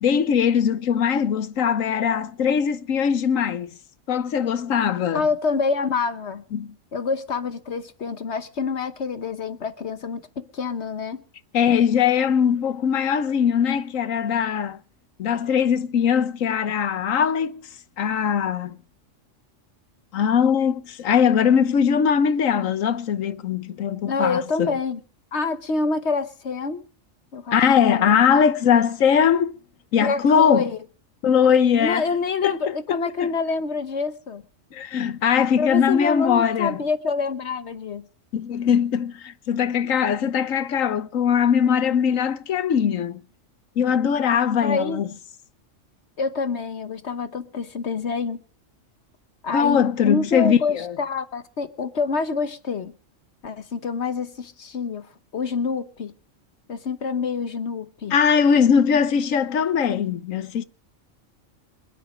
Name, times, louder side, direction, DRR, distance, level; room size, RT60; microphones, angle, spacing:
voice 1, 0.0-3.7 4.1-5.3 6.5-6.7 11.5-14.8 15.2-17.6 18.0-18.8 20.1-24.7 27.5-29.5 29.9-30.7 31.2-32.1 32.4-33.3 34.7-36.8 38.3-43.2 43.8-45.1 49.5-50.9 58.1-60.6, left 7 dB, 85° left, 1.3 m, -21 dB
voice 2, 5.1-6.4 6.9-11.2 24.1-25.0 25.3-26.9 27.3-27.6 27.9-28.2 30.0-30.8 31.7-34.4 35.6-38.1 44.6-45.0 46.2-48.4 49.4-52.9 53.4-55.1 55.3-56.1 56.7-58.2, left 4 dB, 60° left, 1.3 m, -27 dB
26.5 x 9.2 x 5.0 m
omnidirectional pair, 1.3 m